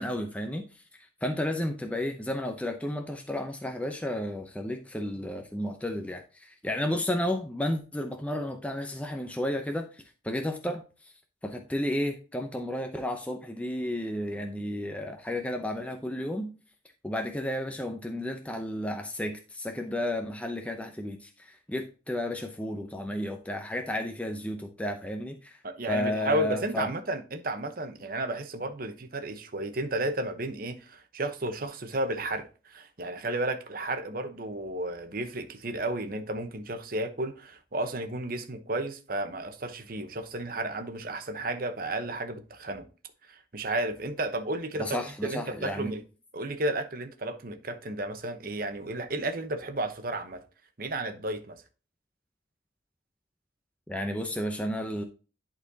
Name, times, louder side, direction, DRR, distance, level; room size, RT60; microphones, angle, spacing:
voice 1, 0.0-11.1 11.4-16.5 17.0-25.6 25.9-26.9 44.8-45.9 53.9-55.0, left 1 dB, 5° left, 0.6 m, -32 dB
voice 2, 25.6-42.9 43.3-44.9 45.2-46.0 46.3-50.4 50.8-51.6, right 1 dB, 50° right, 0.9 m, -33 dB
11.0 x 4.2 x 2.8 m
head